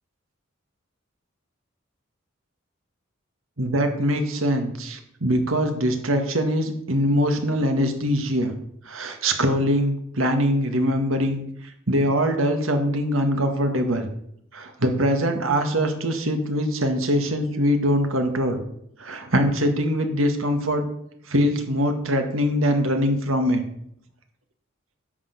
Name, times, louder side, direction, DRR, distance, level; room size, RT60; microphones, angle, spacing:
voice 1, 3.6-8.5 8.9-11.4 11.9-14.1 14.5-18.6 19.0-20.8 21.3-23.6, equal, 80° right, 5 dB, 1.8 m, -23 dB
10.5 x 6.5 x 6.8 m, 0.73 s
head